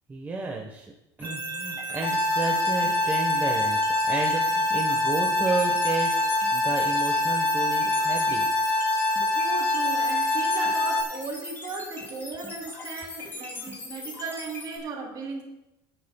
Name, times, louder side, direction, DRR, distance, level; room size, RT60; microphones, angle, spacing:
voice 1, 0.1-0.9 1.2-8.5, right 3 dB, 20° right, 0 dB, 1.2 m, -32 dB
sound 1, 1.2-14.8, left 3 dB, 25° left, 4.8 m, -40 dB
sound 2, 1.2-10.9, right 3 dB, 75° right, 3.2 m, -36 dB
sound 3, 2.0-11.0, left 2 dB, 70° left, 3.3 m, -25 dB
voice 2, 9.3-15.4, right 4 dB, 50° right, 0 dB, 3.4 m, -36 dB
24.5 x 9.2 x 2.3 m, 0.93 s
cardioid pair, 120°, 9 cm